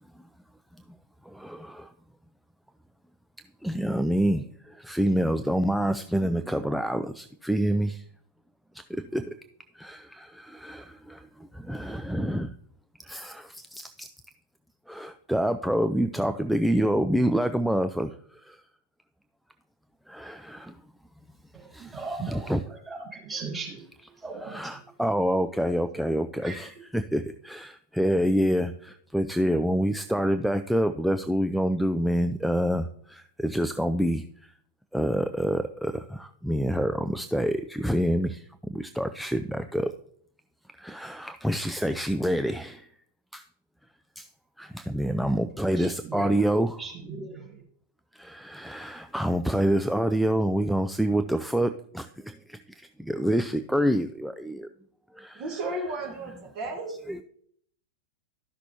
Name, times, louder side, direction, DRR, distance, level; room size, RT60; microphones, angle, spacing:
voice 1, 1.3-1.9 3.6-8.0 8.9-9.4 9.8-11.3 11.5-12.5 13.0-14.1 14.9-18.1 18.4-18.6 20.1-20.8 21.7-22.6 24.4-34.5 34.9-38.4 38.7-39.9 40.8-42.9 43.3-43.4 44.2-44.3 44.6-46.8 48.1-54.7 55.2-55.4 57.1-57.2, equal, ahead, 8 dB, 0.3 m, -27 dB
voice 2, 21.5-23.8 24.2-24.8 26.4-26.7 45.8-46.5 46.8-47.5, right 4 dB, 15° right, -4 dB, 3.6 m, -38 dB
voice 3, 55.3-56.9, right 2 dB, 40° right, 0 dB, 2.0 m, -33 dB
12.5 x 5.9 x 2.9 m, 0.63 s
figure-of-eight pair, 90°, 0 cm